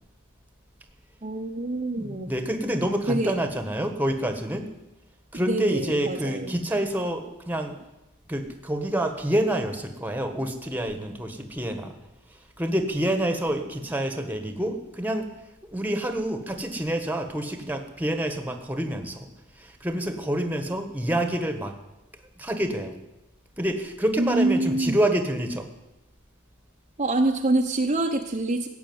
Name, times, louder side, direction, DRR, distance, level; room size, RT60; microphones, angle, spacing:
voice 1, 1.2-2.3 3.1-3.3 5.3-6.5 24.2-25.0 27.0-28.7, right 2 dB, 30° right, 2 dB, 0.9 m, -25 dB
voice 2, 1.9-4.7 5.3-7.8 8.3-11.9 12.6-15.3 15.7-19.3 19.5-21.7 22.4-23.0 23.6-25.7, right 1 dB, 10° right, 7 dB, 1.4 m, -27 dB
15.0 x 8.2 x 9.5 m, 0.96 s
head